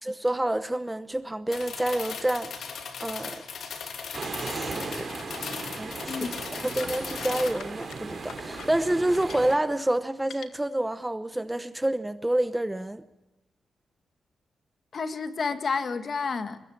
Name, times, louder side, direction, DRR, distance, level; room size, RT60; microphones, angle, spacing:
voice 1, 0.0-2.5 3.0-3.4 4.5-5.1 5.8-6.2 6.6-13.0, right 1 dB, 10° right, 0.9 m, -28 dB
sound 1, 1.5-7.5, left 6 dB, 65° left, 2.9 m, -38 dB
sound 2, 4.1-9.6, right 4 dB, 35° right, 3.7 m, -37 dB
voice 2, 6.1-6.4 14.9-16.6, left 5 dB, 45° left, 1.7 m, -30 dB
sound 3, 6.8-9.6 10.2-10.5, left 8 dB, 85° left, 1.8 m, -44 dB
22.5 x 21.0 x 8.6 m
wide cardioid pair, 135°, 0 cm